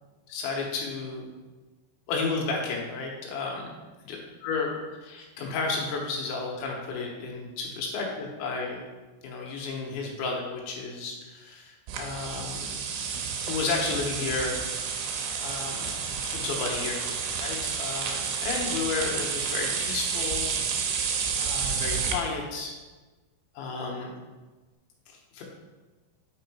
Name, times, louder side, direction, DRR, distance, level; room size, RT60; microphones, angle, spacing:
voice 1, 0.3-1.3 2.1-3.7 4.1-4.2 4.4-8.8 9.2-12.8 13.4-14.6 15.4-15.9 16.2-17.0 17.4-20.5 21.3-22.7 23.6-24.1 25.1-25.4, left 4 dB, 85° left, 0 dB, 3.5 m, -32 dB
sound 1, 11.9-22.1, right 6 dB, 80° right, 3.0 m, -30 dB
8.7 x 4.6 x 4.3 m, 1.2 s
omnidirectional pair, 5.2 m